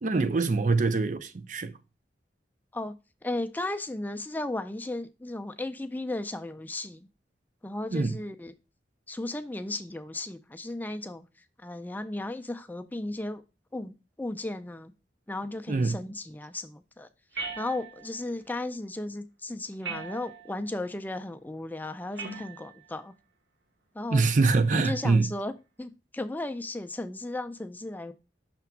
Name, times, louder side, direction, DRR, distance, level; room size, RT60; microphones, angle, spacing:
voice 1, 0.0-1.7 7.9-8.2 15.7-16.0 24.1-25.3, right 3 dB, 45° right, 0.5 m, -24 dB
voice 2, 3.2-7.1 7.6-8.5 9.1-11.3 11.6-13.4 13.7-14.9 15.3-17.1 17.6-23.1 23.9-24.3 24.8-25.5 25.8-28.1, left 2 dB, 10° left, 0.4 m, -35 dB
sound 1, 17.3-18.2 19.8-20.7 22.2-22.8 24.7-25.1, right 4 dB, 75° right, 1.3 m, -39 dB
5.9 x 3.4 x 5.8 m
head